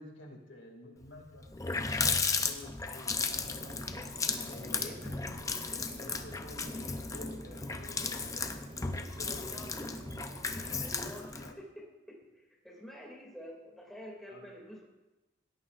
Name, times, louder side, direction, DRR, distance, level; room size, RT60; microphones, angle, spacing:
voice 1, 0.0-3.8 4.3-5.1 6.0-8.6 8.9-9.8 10.6-10.9 11.4-11.6 14.3-14.5, left 1 dB, 75° left, 1 dB, 2.3 m, -51 dB
Water tap faucet, 1.1-1.2 1.4-11.5, left 4 dB, 15° left, 0.5 m, -35 dB
sound 1, 3.2-11.0, right 2 dB, 35° right, 0.5 m, -51 dB
voice 2, 4.6-5.0 9.2-9.7 10.8-12.2 12.6-14.9, equal, ahead, -3 dB, 2.3 m, -48 dB
17.0 x 12.5 x 2.5 m, 1.1 s
head